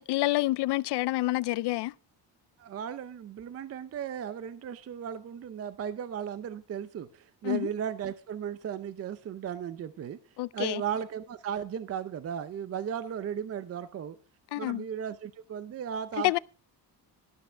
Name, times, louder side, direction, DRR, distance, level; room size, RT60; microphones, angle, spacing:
voice 1, 0.0-1.9 7.4-7.7 10.4-10.8 14.5-14.8 16.2-16.4, left 18 dB, 90° left, 0.6 m, -28 dB
voice 2, 2.6-10.2 10.5-14.2 14.6-16.4, right 8 dB, 40° right, 0.6 m, -36 dB
12.5 x 12.5 x 3.4 m
cardioid pair, 180°, 39 cm